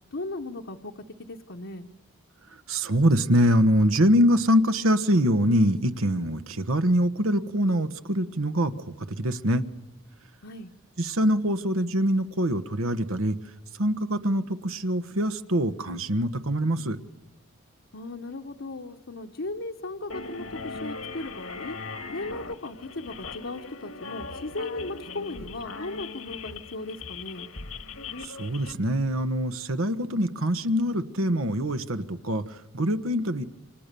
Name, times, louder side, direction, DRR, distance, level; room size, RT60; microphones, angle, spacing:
voice 1, 0.1-0.9 1.2-1.9 10.4-10.7 17.9-21.8 22.1-27.5, left 2 dB, 65° left, 1 dB, 1.1 m, -36 dB
voice 2, 2.7-9.6 11.0-13.4 13.8-17.0 28.2-33.4, equal, 80° right, 10 dB, 1.3 m, -24 dB
sound 1, 20.1-28.7, left 4 dB, 80° left, 1.9 m, -39 dB
29.0 x 26.0 x 6.9 m, 1.1 s
head